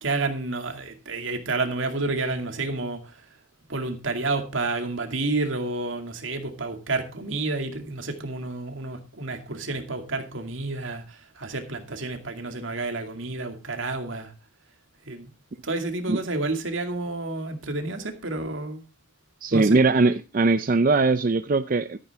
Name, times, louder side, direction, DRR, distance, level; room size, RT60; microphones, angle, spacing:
voice 1, 0.0-3.2 3.7-14.3 15.1-15.3 15.6-18.8 19.5-20.0, right 3 dB, 70° right, 2.3 m, -30 dB
voice 2, 19.4-22.0, right 3 dB, 45° right, 0.5 m, -20 dB
14.0 x 9.1 x 3.5 m
head